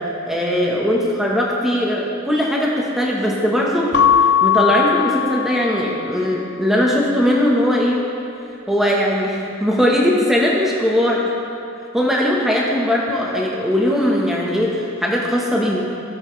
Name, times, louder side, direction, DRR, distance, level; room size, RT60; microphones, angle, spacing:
voice 1, 0.2-8.0 8.7-11.2 11.9-15.8, equal, ahead, -4 dB, 1.3 m, -19 dB
Keyboard (musical) / Bell, 3.9-6.4, left 9 dB, 50° left, 0.4 m, -18 dB
16.5 x 7.4 x 3.4 m, 2.5 s
head